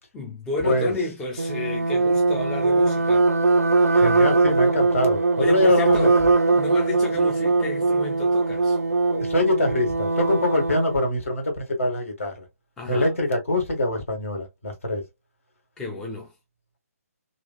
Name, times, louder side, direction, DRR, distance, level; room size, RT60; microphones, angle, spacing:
voice 1, 0.1-3.3 5.4-6.2 6.5-8.8 12.8-13.2 15.8-16.3, left 2 dB, 5° left, 0.4 m, -31 dB
sound 1, 1.4-11.0, right 3 dB, 70° right, 0.4 m, -21 dB
voice 2, 3.9-6.1 9.1-12.4 12.9-15.0, left 1 dB, 60° left, 1.5 m, -24 dB
2.9 x 2.8 x 2.2 m
figure-of-eight pair, 140°, 8 cm